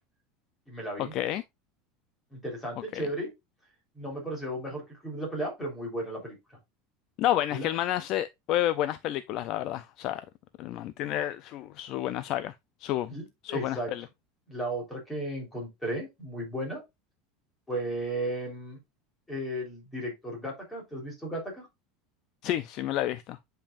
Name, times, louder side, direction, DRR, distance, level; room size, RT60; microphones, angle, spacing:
voice 1, 0.7-1.1 2.3-3.3 4.0-6.4 7.5-7.7 13.1-13.9 14.5-16.8 17.7-18.8 19.3-21.7, right 1 dB, 5° left, 3.7 m, -35 dB
voice 2, 7.2-10.2 10.6-12.5 12.8-14.0 22.4-23.4, left 13 dB, 35° left, 0.4 m, -30 dB
8.6 x 5.5 x 2.5 m
supercardioid pair, 180°, 0 cm